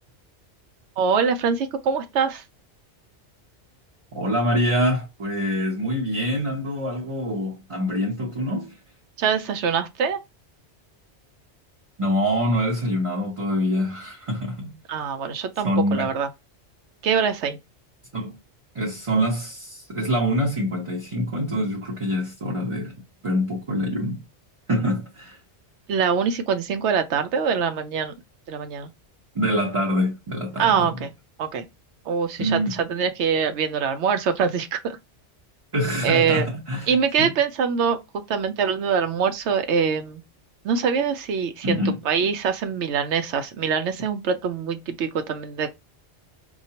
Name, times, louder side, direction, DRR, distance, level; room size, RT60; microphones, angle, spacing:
voice 1, 1.0-2.4 9.2-10.2 14.9-16.3 17.0-17.6 25.9-28.1 28.5-28.9 30.6-31.1 31.4-31.7 32.1-35.0 36.0-36.5 36.9-38.0 38.3-40.2 40.6-45.7, right 6 dB, 80° right, 0.9 m, -24 dB
voice 2, 4.1-8.7 12.0-14.8 15.6-16.1 18.1-18.4 18.7-22.9 23.2-24.2 24.7-25.4 29.3-30.9 32.4-32.8 35.7-37.3 41.6-42.0, equal, 30° right, 0.8 m, -25 dB
4.5 x 2.4 x 2.8 m
omnidirectional pair, 1.2 m